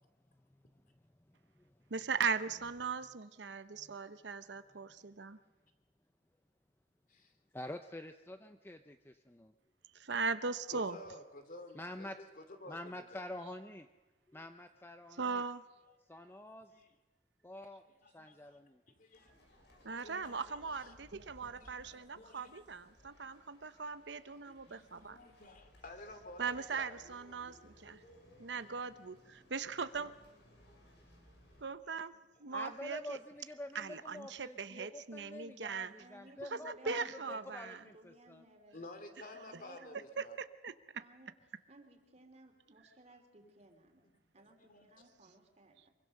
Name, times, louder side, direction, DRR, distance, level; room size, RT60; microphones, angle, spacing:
voice 1, 1.9-5.4 9.9-11.0 15.2-15.6 19.8-25.2 26.4-28.0 28.4-30.1 31.6-32.1 32.4-33.2 33.7-35.9 36.5-37.8 40.2-40.7, right 5 dB, 75° right, 12 dB, 0.9 m, -39 dB
voice 2, 7.5-9.5 11.7-12.2 12.7-13.9 14.3-15.4 16.1-16.7 17.4-17.8 18.1-18.8 32.5-38.4, left 1 dB, 15° left, 7 dB, 0.7 m, -47 dB
voice 3, 10.7-13.3 16.5-16.9 18.0-18.6 18.9-19.3 20.0-20.9 21.5-22.5 24.5-27.4 32.1-32.2 38.7-40.4 43.4-43.5 44.6-44.9, left 2 dB, 50° left, 7 dB, 2.7 m, -53 dB
sound 1, 19.1-31.6, equal, 70° left, 6.5 m, -63 dB
voice 4, 36.0-38.8 39.3-40.0 41.0-41.4 41.7-44.1 44.3-45.9, right 1 dB, 40° right, 4 dB, 3.3 m, -60 dB
24.5 x 23.5 x 6.6 m, 1.2 s
head